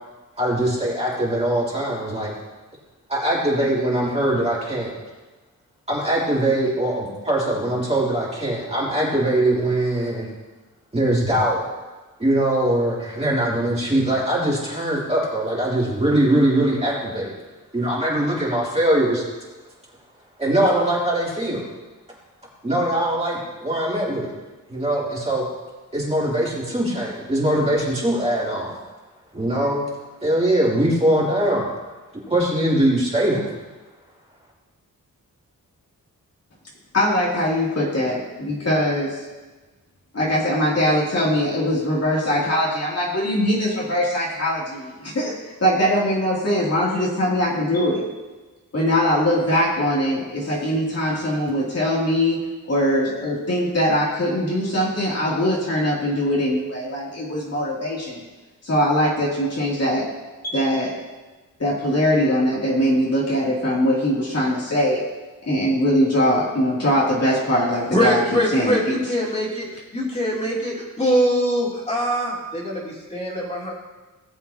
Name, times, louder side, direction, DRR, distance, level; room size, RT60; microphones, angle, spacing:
voice 1, 0.4-2.3 3.1-4.9 5.9-10.3 10.9-11.6 12.2-17.3 17.7-19.2 20.4-21.6 22.6-24.3 24.7-25.4 25.9-28.7 29.3-29.8 30.2-31.7 32.3-33.5, right 1 dB, 20° right, -7 dB, 3.3 m, -21 dB
voice 2, 36.9-39.3 40.1-48.1 48.7-52.4 52.7-58.2 58.6-60.1 60.4-60.9 61.6-65.0 65.4-68.2 68.5-68.8, equal, 45° left, -6 dB, 3.0 m, -21 dB
voice 3, 67.9-73.7, equal, 20° left, -6 dB, 3.4 m, -23 dB
18.0 x 7.5 x 2.9 m, 1.2 s
wide cardioid pair, 115°, 34 cm